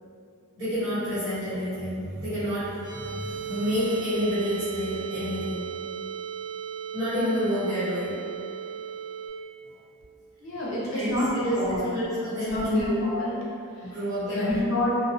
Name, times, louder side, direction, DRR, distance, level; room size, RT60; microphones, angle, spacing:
voice 1, 0.6-5.7 6.9-8.2 10.9-13.0 13.8-14.6, equal, 65° right, -15 dB, 1.2 m, -29 dB
sound 1, 2.8-9.3, right 7 dB, 20° left, 0.6 m, -36 dB
voice 2, 10.4-11.9 12.5-13.4 14.3-14.9, left 1 dB, 65° left, -5 dB, 0.6 m, -27 dB
2.3 x 2.1 x 2.7 m, 2.4 s
head